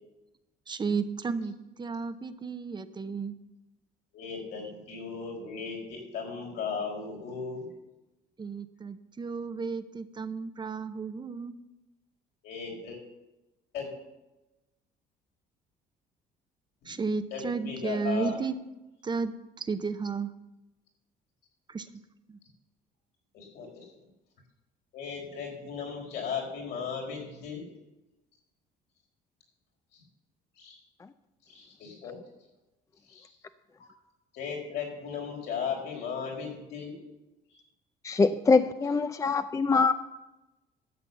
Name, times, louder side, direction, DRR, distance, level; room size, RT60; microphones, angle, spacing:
voice 1, 0.7-3.4 8.4-11.5 16.8-18.6 19.0-19.3 19.6-20.3 21.7-21.9 22.3-22.4, right 4 dB, 25° right, 10 dB, 0.7 m, -33 dB
voice 2, 4.1-7.7 12.4-13.0 13.7-13.9 16.8-17.0 17.3-18.4 23.3-23.9 24.9-27.6 29.9-30.0 30.6-30.8 31.5-32.2 33.1-33.3 34.3-36.9 37.5-37.6, left 6 dB, 75° left, -1 dB, 4.4 m, -36 dB
voice 3, 38.0-39.9, left 4 dB, 20° left, 11 dB, 0.5 m, -23 dB
12.0 x 7.7 x 7.0 m, 1.0 s
cardioid pair, 110°, 17 cm